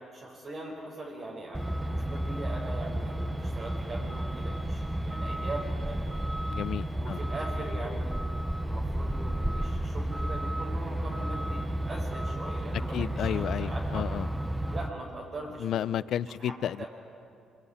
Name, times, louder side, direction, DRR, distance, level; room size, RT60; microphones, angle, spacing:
voice 1, 0.1-6.1 6.9-8.2 8.6-14.3 14.7-15.9 16.3-16.5 16.8-16.9, right 2 dB, 45° right, -3 dB, 5.3 m, -41 dB
Truck, 1.5-14.9, right 1 dB, 10° right, 0.9 m, -32 dB
voice 2, 6.5-7.2 12.9-14.3 15.6-16.8, left 10 dB, 70° left, 18 dB, 0.6 m, -32 dB
24.5 x 22.0 x 10.0 m, 2.4 s
cardioid pair, 90°, 0 cm